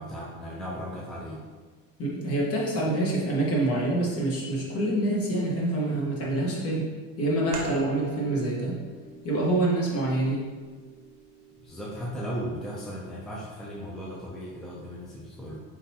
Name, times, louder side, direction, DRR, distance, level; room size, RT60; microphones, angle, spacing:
voice 1, 0.0-1.4 11.6-15.6, equal, ahead, -5 dB, 0.5 m, -36 dB
voice 2, 2.0-6.9 7.2-8.8 9.2-10.5, right 1 dB, 40° left, -4 dB, 1.2 m, -26 dB
sound 1, 7.5-12.8, right 3 dB, 55° right, 0.8 m, -44 dB
4.4 x 3.8 x 2.8 m, 1.4 s
cardioid pair, 140°, 36 cm